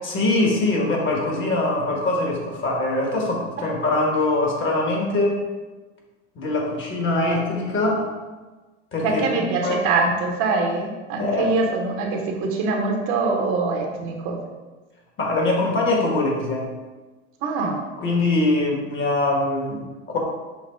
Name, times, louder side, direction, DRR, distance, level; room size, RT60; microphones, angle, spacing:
voice 1, 0.0-5.4 6.4-8.1 8.9-9.8 11.2-11.5 15.2-16.7 18.0-20.2, left 2 dB, 35° left, 0 dB, 1.2 m, -23 dB
voice 2, 9.0-14.4 17.4-17.8, right 3 dB, 55° right, 1 dB, 1.0 m, -23 dB
5.9 x 2.0 x 4.4 m, 1.2 s
hypercardioid pair, 95°, 35 cm